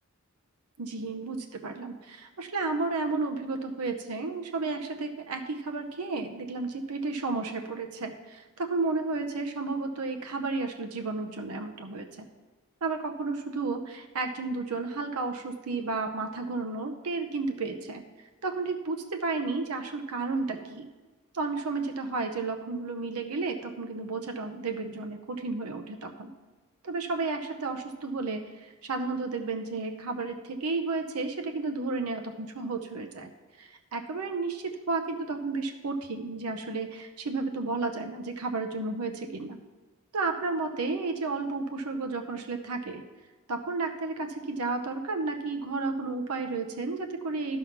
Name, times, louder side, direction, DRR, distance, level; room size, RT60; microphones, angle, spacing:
voice 1, 0.8-12.3 12.8-20.9 21.3-26.3 26.8-33.3 33.6-39.6 40.1-43.0 43.5-47.6, right 3 dB, 85° right, 4 dB, 0.7 m, -32 dB
11.5 x 5.6 x 5.8 m, 1.3 s
head